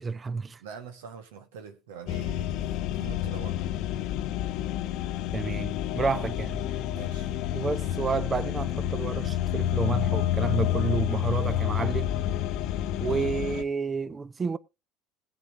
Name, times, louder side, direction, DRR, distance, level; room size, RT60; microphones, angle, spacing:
voice 1, 0.0-0.6 5.3-6.7 7.5-12.1 13.0-14.6, right 5 dB, 30° right, 0.8 m, -30 dB
voice 2, 0.6-3.7 6.9-7.3, right 6 dB, 75° right, 1.5 m, -44 dB
sound 1, 2.1-13.6, left 12 dB, 60° left, 1.0 m, -29 dB
20.0 x 8.0 x 2.7 m
hypercardioid pair, 65°, 0 cm